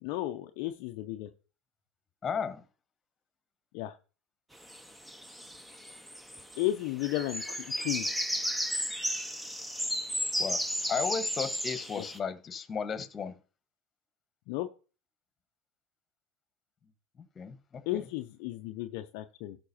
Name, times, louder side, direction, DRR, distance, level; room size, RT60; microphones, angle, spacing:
voice 1, 0.0-1.3 3.7-4.0 6.6-8.1 12.0-12.1 14.5-14.7 17.9-19.6, left 15 dB, 60° left, 0.6 m, -34 dB
voice 2, 2.2-2.6 10.4-10.6 10.9-13.3 17.3-18.0, left 6 dB, 30° left, 1.3 m, -34 dB
sound 1, 4.6-6.7 7.0-12.2, equal, 5° right, 1.0 m, -34 dB
17.0 x 6.0 x 2.8 m
hypercardioid pair, 80°, 0 cm